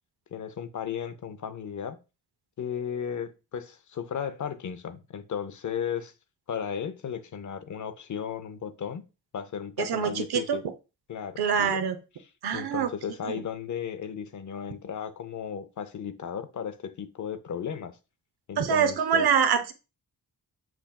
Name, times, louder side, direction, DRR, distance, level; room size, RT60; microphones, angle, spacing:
voice 1, 0.3-2.0 2.6-6.1 6.5-9.0 9.3-10.6 11.1-11.8 12.5-18.0 18.5-19.3, left 8 dB, 45° left, 0.6 m, -35 dB
voice 2, 9.8-10.6 11.4-12.0 12.4-12.9 13.2-13.4 18.6-19.7, right 7 dB, 65° right, 0.7 m, -25 dB
5.7 x 2.5 x 2.2 m
cardioid pair, 65°, 41 cm